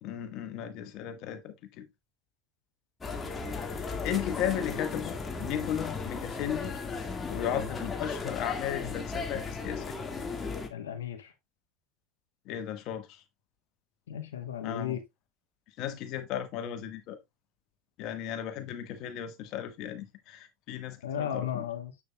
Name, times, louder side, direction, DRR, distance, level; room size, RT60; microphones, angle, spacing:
voice 1, 0.0-1.9 3.7-6.7 7.3-10.0 12.4-13.2 14.6-15.0 15.8-17.2 18.0-21.6, left 10 dB, 55° left, 1.4 m, -35 dB
sound 1, 3.0-10.7, left 4 dB, 20° left, 1.6 m, -36 dB
voice 2, 10.7-11.3 14.1-15.0 21.0-22.0, left 9 dB, 85° left, 1.0 m, -35 dB
7.2 x 6.7 x 2.2 m
hypercardioid pair, 85°, 0 cm